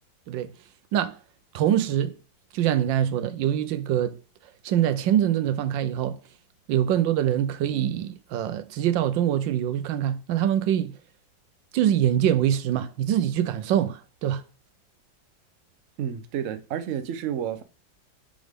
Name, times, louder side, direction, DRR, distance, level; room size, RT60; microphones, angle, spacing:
voice 1, 1.5-2.2 2.5-4.2 4.6-6.2 6.7-10.9 11.7-14.4, right 10 dB, 80° right, 1.4 m, -24 dB
voice 2, 16.0-17.6, right 9 dB, 60° right, 0.8 m, -30 dB
8.7 x 5.1 x 3.6 m
omnidirectional pair, 2.1 m